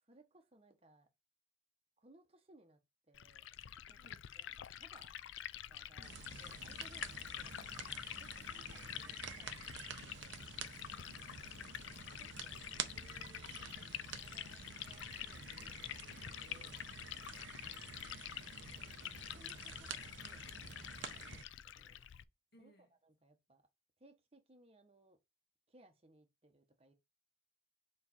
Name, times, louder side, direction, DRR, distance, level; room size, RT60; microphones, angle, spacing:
voice 1, 0.0-1.1 2.0-2.8 3.1-3.4 3.9-4.0 4.3-5.1 5.7-10.4 12.2-16.8 18.8-22.0 22.6-23.6 24.0-25.2 25.7-26.9, right 1 dB, 30° right, 1.0 m, -66 dB
Liquid, 3.1-22.2, left 11 dB, 70° left, 0.4 m, -48 dB
voice 2, 4.0-4.3 6.0-6.2 8.4-9.1 10.7-11.8 22.5-22.9, right 1 dB, 50° left, 1.7 m, -66 dB
sound 1, 6.0-21.4, right 6 dB, 65° right, 0.7 m, -50 dB
7.1 x 3.2 x 4.2 m
head